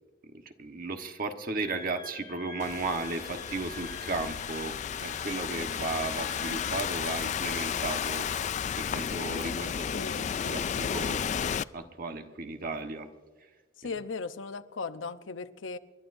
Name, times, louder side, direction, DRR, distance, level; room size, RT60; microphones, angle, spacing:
voice 1, 0.6-8.3 8.8-9.9 10.1-13.1 13.8-13.9, right 3 dB, 50° right, 1.2 m, -35 dB
Wind instrument woodwind instrument, 1.6-6.9, left 2 dB, 20° left, 2.2 m, -47 dB
Thunderstorm / Rain, 2.6-11.6, left 8 dB, 40° left, 0.3 m, -33 dB
voice 2, 9.9-10.3 13.8-15.8, left 4 dB, 85° left, 0.8 m, -37 dB
29.0 x 12.0 x 2.6 m
head